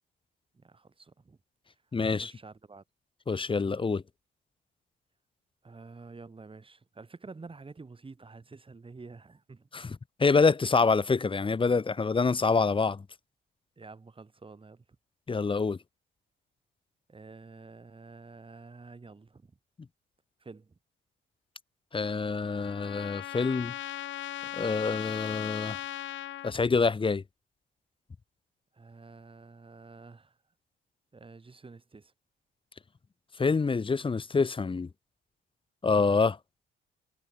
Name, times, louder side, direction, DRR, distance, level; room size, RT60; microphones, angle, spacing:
voice 1, 0.5-1.4 2.1-2.8 5.6-9.9 13.8-14.8 17.1-19.6 20.4-20.8 28.7-30.4 31.1-32.1, right 4 dB, 25° right, 6.5 m, -49 dB
voice 2, 1.9-2.3 3.3-4.0 9.7-13.0 15.3-15.8 21.9-23.7 24.5-25.8 26.4-27.2 33.4-34.9 35.8-36.4, left 4 dB, 25° left, 1.2 m, -26 dB
Trumpet, 22.0-26.5, left 13 dB, 75° left, 1.3 m, -39 dB
cardioid pair, 90°, 20 cm